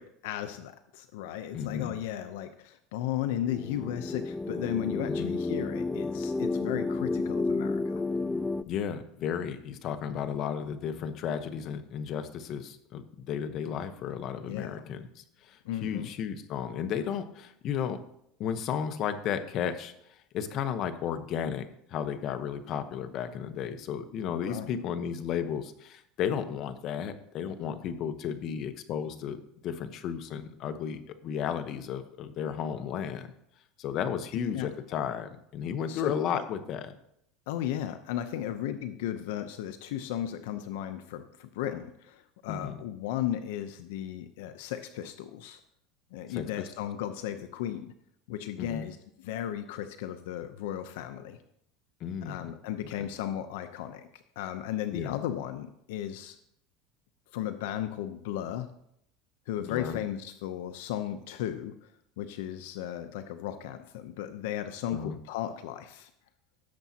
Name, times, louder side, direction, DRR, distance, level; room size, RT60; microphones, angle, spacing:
voice 1, 0.0-8.0 14.5-14.8 15.6-16.1 24.4-24.7 34.5-34.7 35.9-36.4 37.5-45.6 46.1-47.9 48.3-51.4 52.2-56.4 57.3-58.7 59.5-61.9 62.2-66.1, left 11 dB, 80° left, 9 dB, 0.7 m, -35 dB
voice 2, 1.5-2.0 5.1-5.3 8.7-18.0 18.4-33.3 33.8-37.0 42.5-42.8 46.3-46.6 48.6-48.9 52.0-52.5 52.9-53.1 54.9-55.2 59.7-60.0 64.9-65.2, left 8 dB, 50° left, 9 dB, 1.0 m, -34 dB
sound 1, 3.4-8.6, left 3 dB, 10° left, 0.3 m, -31 dB
16.5 x 7.2 x 2.9 m, 0.74 s
supercardioid pair, 125°, 0 cm